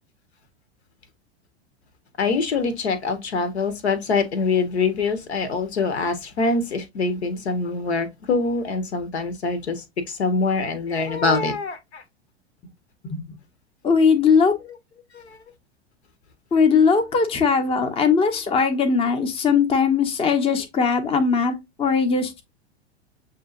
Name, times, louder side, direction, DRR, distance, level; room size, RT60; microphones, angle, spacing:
voice 1, 2.2-12.0 15.1-15.4, left 4 dB, 70° left, 1.2 m, -24 dB
voice 2, 13.0-13.4 13.8-14.6 16.5-22.4, left 5 dB, 15° left, 0.8 m, -20 dB
7.0 x 2.8 x 2.5 m
figure-of-eight pair, 90°, 33 cm